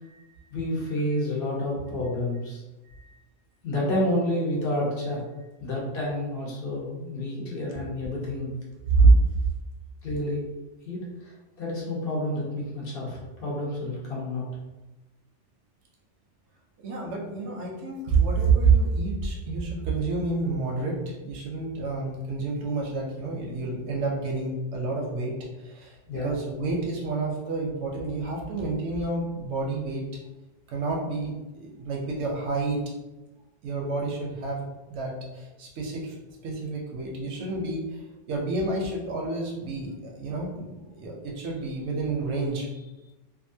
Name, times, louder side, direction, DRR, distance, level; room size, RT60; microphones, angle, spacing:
voice 1, 0.5-2.6 3.6-5.2 5.6-8.5 10.0-10.5 10.8-11.0 11.2-14.5 26.1-26.4, left 1 dB, 55° left, -4 dB, 1.0 m, -29 dB
voice 2, 2.9-3.2 8.9-9.1 16.8-30.0 30.7-32.8 33.6-36.2 36.4-38.0 38.3-42.8, right 4 dB, 90° right, -2 dB, 0.9 m, -28 dB
2.8 x 2.4 x 2.6 m, 1.1 s
omnidirectional pair, 1.2 m